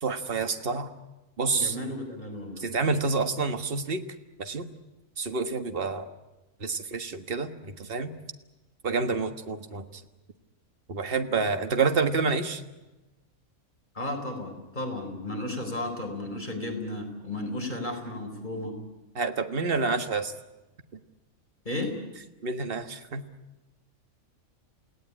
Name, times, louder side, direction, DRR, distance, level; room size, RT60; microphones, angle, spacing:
voice 1, 0.0-0.9 1.4-1.7 2.6-4.0 4.4-4.7 5.2-6.1 6.6-8.1 8.8-10.0 10.9-12.6 19.1-20.3 22.4-23.2, right 4 dB, 40° right, 7 dB, 1.6 m, -28 dB
voice 2, 1.5-2.6 13.9-18.8 21.6-22.0, left 1 dB, 30° left, 3 dB, 4.6 m, -34 dB
29.0 x 18.0 x 9.8 m, 1.1 s
omnidirectional pair, 1.5 m